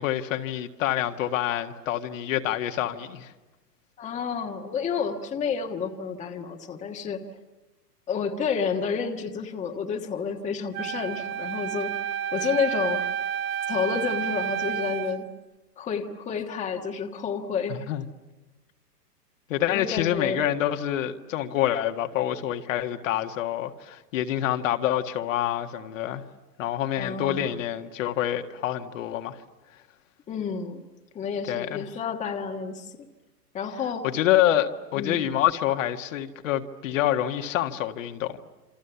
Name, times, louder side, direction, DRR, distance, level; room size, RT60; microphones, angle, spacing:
voice 1, 0.0-3.3 17.7-18.0 19.5-26.2 26.6-29.4 31.5-31.9 34.1-38.4, left 12 dB, 50° left, 1.8 m, -27 dB
voice 2, 4.0-7.4 8.1-11.9 12.3-13.0 13.7-15.3 15.8-17.9 19.7-20.4 27.0-27.5 30.3-30.8 31.1-33.0 33.5-34.0 34.9-35.2, left 6 dB, 15° left, 1.4 m, -30 dB
Wind instrument woodwind instrument, 10.7-15.2, right 9 dB, 25° right, 1.1 m, -30 dB
28.0 x 26.0 x 7.0 m
hypercardioid pair, 135°, 48 cm